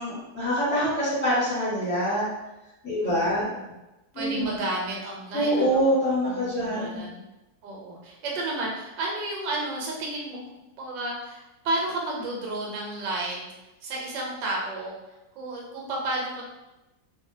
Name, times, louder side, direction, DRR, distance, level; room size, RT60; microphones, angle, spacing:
voice 1, 0.0-2.3 2.8-3.5 4.1-4.6 5.3-7.1, equal, 5° left, -10 dB, 1.2 m, -25 dB
voice 2, 3.0-3.7 4.1-5.9 6.2-7.2 7.6-13.5 13.8-14.9 15.3-16.4, right 2 dB, 90° right, -2 dB, 1.4 m, -32 dB
2.8 x 2.6 x 2.7 m, 1.0 s
omnidirectional pair, 1.9 m